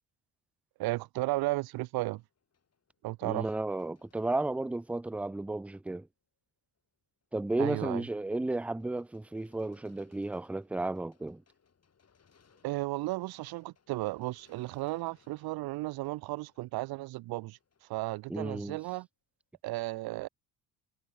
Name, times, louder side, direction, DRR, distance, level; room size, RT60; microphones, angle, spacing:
voice 1, 0.8-2.2 3.0-3.5 7.6-8.0 12.6-17.6 17.9-19.1 19.6-20.3, right 19 dB, 65° right, 0.6 m, -34 dB
sound 1, 1.8-5.6 5.9-6.0 6.8-6.9 7.2-7.6 8.2-18.6, left 6 dB, 40° left, 5.2 m, -69 dB
voice 2, 3.2-6.1 7.3-11.4 18.3-18.8, right 2 dB, 5° right, 0.4 m, -33 dB
supercardioid pair, 75°, 40 cm